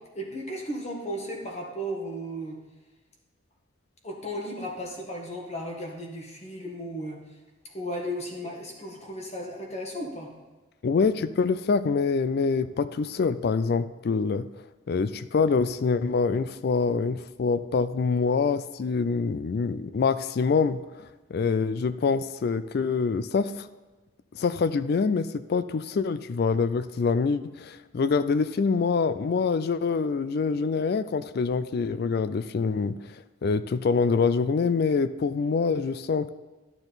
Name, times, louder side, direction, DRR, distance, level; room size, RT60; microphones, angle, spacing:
voice 1, 0.1-2.6 4.0-7.2 7.7-10.3, equal, 30° left, -1 dB, 1.6 m, -35 dB
voice 2, 10.8-14.5 14.9-23.7 24.3-33.0 33.4-36.3, left 5 dB, 50° left, 14 dB, 0.3 m, -25 dB
11.5 x 6.9 x 4.0 m, 1.2 s
head